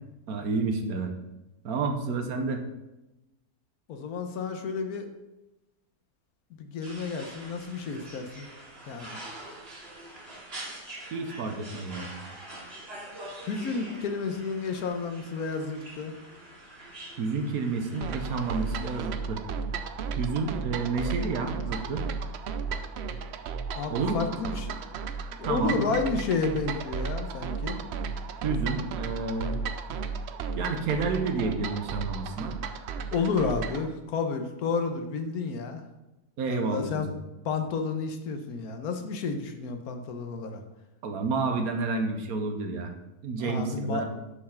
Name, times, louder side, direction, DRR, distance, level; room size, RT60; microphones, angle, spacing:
voice 1, 0.3-1.1 1.6-2.6 11.1-12.1 17.2-19.4 20.2-22.0 23.9-24.3 25.5-25.9 28.4-29.6 30.5-32.5 36.4-37.2 41.0-42.9 43.2-44.1, right 4 dB, 70° right, 5 dB, 1.3 m, -30 dB
voice 2, 3.9-5.1 6.5-8.5 8.9-9.2 13.4-16.2 23.7-24.7 25.3-27.8 33.1-35.8 36.5-37.1 37.4-40.6 43.4-44.0, left 4 dB, 70° left, 6 dB, 1.3 m, -31 dB
sound 1, 6.8-19.0, right 1 dB, 40° right, 2.0 m, -45 dB
sound 2, 18.0-33.9, right 5 dB, 85° right, 0.5 m, -34 dB
7.4 x 4.4 x 5.7 m, 0.98 s
omnidirectional pair, 1.7 m